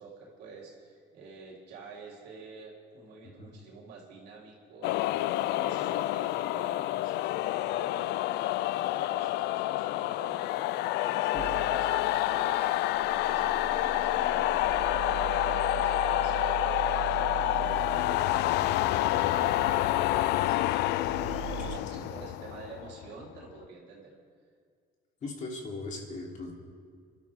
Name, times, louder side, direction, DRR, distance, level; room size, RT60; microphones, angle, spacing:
voice 1, 0.0-5.2 5.6-24.1, right 4 dB, 80° right, -3 dB, 4.0 m, -49 dB
sound 1, 4.8-23.4, left 15 dB, 80° left, 0.4 m, -28 dB
sound 2, 11.4-21.8, right 14 dB, 50° right, 0.5 m, -41 dB
voice 2, 21.5-22.0 25.2-26.5, left 2 dB, 45° left, -2 dB, 3.6 m, -39 dB
28.5 x 12.0 x 3.7 m, 2.1 s
cardioid pair, 110°, 17 cm